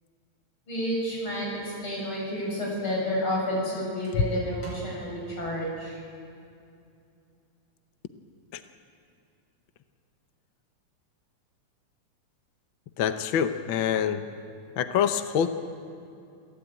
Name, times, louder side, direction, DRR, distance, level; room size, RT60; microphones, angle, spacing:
voice 1, 0.7-6.0, equal, 40° left, -3 dB, 8.2 m, -30 dB
voice 2, 13.0-14.2 14.8-15.5, left 8 dB, 70° left, 8 dB, 1.2 m, -25 dB
28.0 x 16.5 x 9.2 m, 2.5 s
omnidirectional pair, 3.4 m